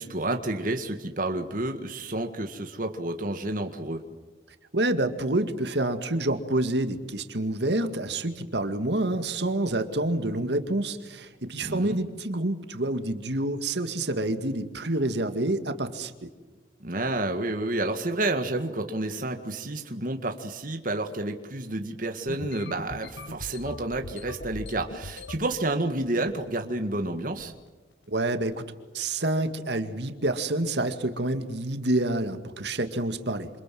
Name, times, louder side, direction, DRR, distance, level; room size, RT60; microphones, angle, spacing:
voice 1, 0.0-4.0 11.6-12.0 16.8-27.5, right 2 dB, 45° right, 5 dB, 1.9 m, -30 dB
voice 2, 4.7-16.1 28.1-28.6 28.9-33.5, right 1 dB, 65° right, 8 dB, 2.1 m, -28 dB
sound 1, 22.3-25.6 26.0-26.5 26.8-27.1 27.4-27.7 28.3-28.5, left 2 dB, 70° left, 1.5 m, -40 dB
27.5 x 27.5 x 7.7 m, 1.3 s
head